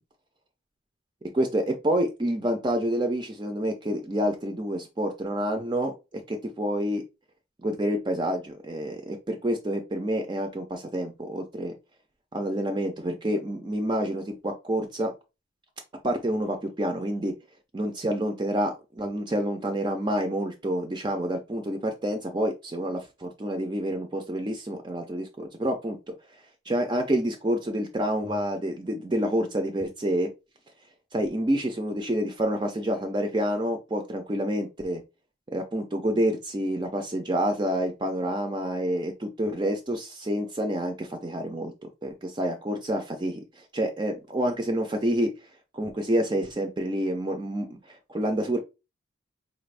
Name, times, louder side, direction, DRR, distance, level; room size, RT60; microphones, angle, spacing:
voice 1, 1.3-7.0 7.6-11.7 12.3-15.1 16.0-17.3 17.7-26.0 26.7-30.3 31.1-35.0 35.5-41.7 42.0-45.3 45.7-48.6, equal, 20° right, 5 dB, 0.4 m, -28 dB
4.3 x 2.5 x 3.3 m, 0.27 s
head